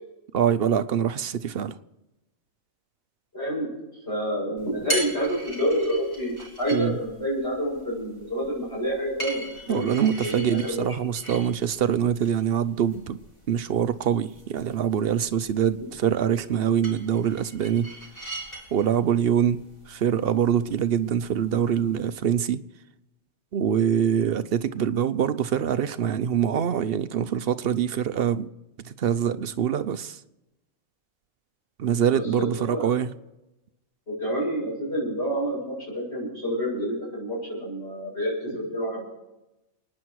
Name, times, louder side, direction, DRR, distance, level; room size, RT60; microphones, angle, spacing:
voice 1, 0.3-1.7 6.7-7.0 9.7-13.2 13.5-17.9 18.7-22.6 23.5-28.5 28.8-30.2 31.8-33.1, right 8 dB, 55° right, 0.7 m, -24 dB
voice 2, 3.3-3.7 4.1-9.9 10.2-10.8 32.1-32.9 34.1-39.0, equal, 50° left, 8.0 m, -28 dB
sound 1, 4.6-22.1, right 2 dB, 30° left, 3.5 m, -40 dB
28.0 x 9.8 x 4.7 m
omnidirectional pair, 1.4 m